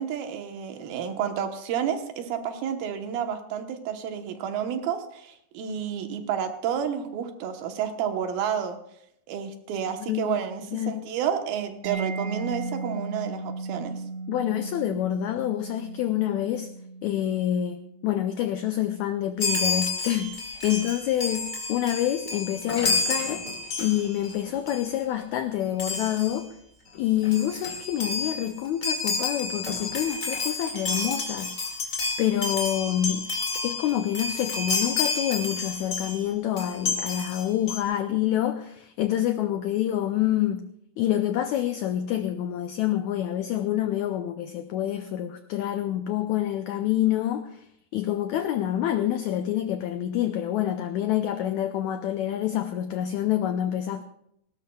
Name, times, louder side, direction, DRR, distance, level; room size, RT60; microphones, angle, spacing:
voice 1, 0.0-8.8 9.3-13.9, right 8 dB, 90° right, 6 dB, 3.0 m, -30 dB
voice 2, 10.0-10.4 10.7-11.0 14.3-16.7 17.0-23.4 23.8-26.5 27.0-31.5 32.2-33.3 33.6-40.7 41.0-47.7 47.9-54.0, left 12 dB, 90° left, 8 dB, 1.6 m, -27 dB
Mallet percussion, 11.8-19.4, right 3 dB, 55° right, 1.9 m, -37 dB
Chime, 19.4-24.4 24.7-24.9 25.8-26.4 27.0-27.1 27.2-36.2 36.6-37.8, left 4 dB, 30° left, 1.8 m, -30 dB
19.0 x 18.0 x 2.3 m, 0.75 s
omnidirectional pair, 4.1 m